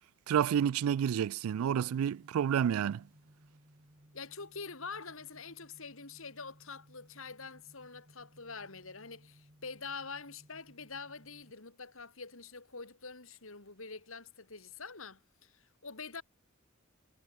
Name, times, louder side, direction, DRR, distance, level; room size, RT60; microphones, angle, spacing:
voice 1, 0.3-3.0, right 8 dB, 80° right, 0.3 m, -29 dB
sound 1, 1.5-11.5, equal, 35° right, 4.6 m, -62 dB
voice 2, 4.1-16.2, left 4 dB, 70° left, 3.0 m, -46 dB
head